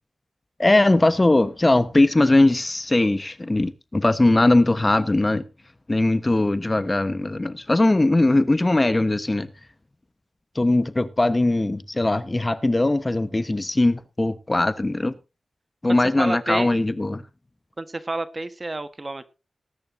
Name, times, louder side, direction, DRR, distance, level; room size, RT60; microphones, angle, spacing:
voice 1, 0.6-5.4 5.9-9.5 10.5-15.1 15.8-17.2, left 2 dB, 25° left, 1.1 m, -20 dB
voice 2, 15.8-16.7 17.8-19.2, right 2 dB, 30° right, 1.3 m, -29 dB
19.5 x 10.5 x 2.7 m
wide cardioid pair, 90°, 0 cm